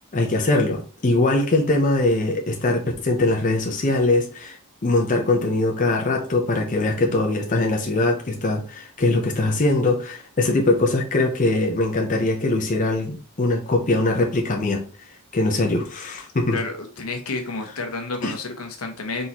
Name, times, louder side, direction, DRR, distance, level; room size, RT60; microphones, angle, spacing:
voice 1, 0.1-4.6 4.8-14.9 15.3-16.6 18.2-18.3, left 2 dB, 35° left, 1 dB, 0.7 m, -22 dB
voice 2, 16.5-19.3, left 3 dB, 80° left, 5 dB, 1.0 m, -30 dB
4.1 x 3.7 x 2.9 m, 0.38 s
head